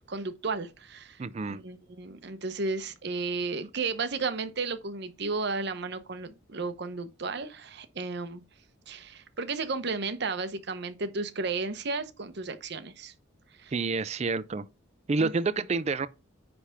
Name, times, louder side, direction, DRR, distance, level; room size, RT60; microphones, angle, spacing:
voice 1, 0.0-1.2 1.5-8.4 8.9-13.1 13.6-13.7 15.2-15.3, right 4 dB, 55° right, 0.8 m, -33 dB
voice 2, 1.2-1.6 13.7-14.7 15.1-16.1, right 4 dB, 35° right, 0.4 m, -28 dB
9.6 x 3.4 x 5.6 m
head